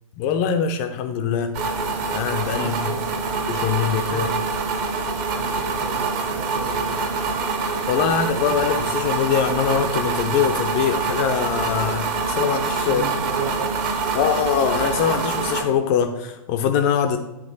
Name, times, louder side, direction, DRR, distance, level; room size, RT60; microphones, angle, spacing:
voice 1, 0.2-1.6 2.1-2.9 3.5-4.3 7.9-13.0 14.1-17.2, left 7 dB, 25° left, 7 dB, 0.4 m, -23 dB
sound 1, 1.5-15.6, right 4 dB, 30° right, 0.8 m, -25 dB
voice 2, 2.5-3.2 4.1-4.3 5.4-7.0 12.9-14.3, right 4 dB, 55° right, 4 dB, 1.1 m, -34 dB
8.2 x 3.0 x 3.9 m, 0.96 s
figure-of-eight pair, 125°, 18 cm